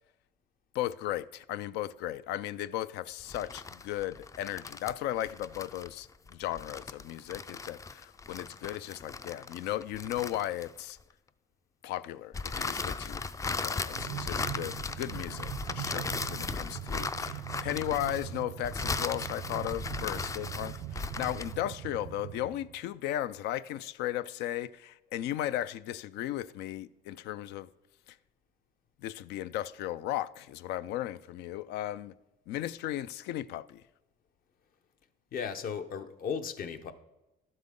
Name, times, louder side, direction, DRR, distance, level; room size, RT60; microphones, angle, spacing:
voice 1, 0.7-11.0 11.8-13.2 13.6-27.7 29.0-32.1 32.5-33.8, left 13 dB, 85° left, 0.4 m, -36 dB
sound 1, 3.2-11.0 12.3-21.6, left 4 dB, 20° left, 0.3 m, -37 dB
Train, 13.9-22.8, right 12 dB, 80° right, 0.5 m, -41 dB
voice 2, 35.3-36.9, left 6 dB, 60° left, 0.9 m, -36 dB
12.0 x 7.8 x 3.7 m
cardioid pair, 110°, 17 cm